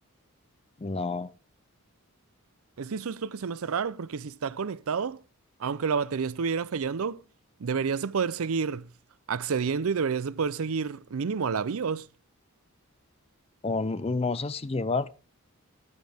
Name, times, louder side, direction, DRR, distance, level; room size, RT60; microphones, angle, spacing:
voice 1, 0.8-1.3 13.6-15.1, left 3 dB, 25° left, 0.4 m, -29 dB
voice 2, 2.8-5.2 5.6-7.2 7.6-8.9 9.3-12.1, right 5 dB, 75° right, 0.5 m, -29 dB
11.0 x 9.3 x 3.5 m
head